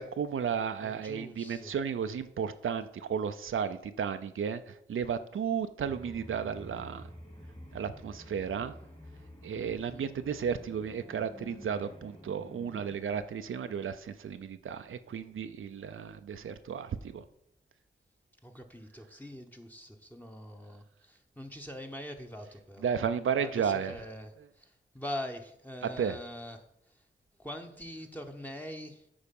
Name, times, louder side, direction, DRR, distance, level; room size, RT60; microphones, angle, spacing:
voice 1, 0.0-7.0 7.7-8.7 9.4-17.2 22.8-23.9 26.0-26.2, right 7 dB, 85° right, 10 dB, 0.5 m, -33 dB
voice 2, 0.8-1.7 9.5-10.1 18.4-22.9 23.4-24.3 24.6-24.7 24.9-26.6 27.4-29.0, left 1 dB, 10° left, 2 dB, 0.9 m, -43 dB
sound 1, 5.8-13.0, equal, 25° left, 1.9 m, -50 dB
8.7 x 4.8 x 5.3 m, 0.77 s
cardioid pair, 55°, 20 cm